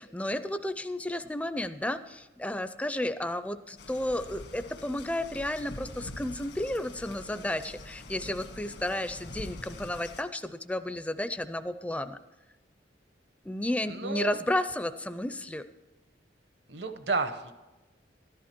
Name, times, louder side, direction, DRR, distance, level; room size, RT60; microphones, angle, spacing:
voice 1, 0.0-12.2 13.4-15.6, left 1 dB, 5° left, 11 dB, 0.4 m, -32 dB
sound 1, 3.8-10.2, left 2 dB, 75° left, 1.6 m, -45 dB
voice 2, 13.9-14.4 16.7-17.5, right 3 dB, 65° right, 9 dB, 1.0 m, -31 dB
13.0 x 11.5 x 4.4 m, 1.1 s
head